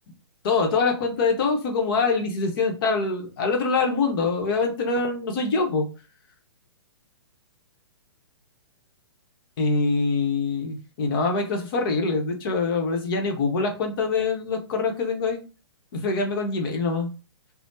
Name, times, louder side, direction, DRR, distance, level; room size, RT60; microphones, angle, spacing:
voice 1, 0.4-5.9 9.6-15.4 15.9-17.1, left 4 dB, 50° left, 3 dB, 0.8 m, -24 dB
3.3 x 2.0 x 2.7 m, 0.33 s
hypercardioid pair, 140°, 15 cm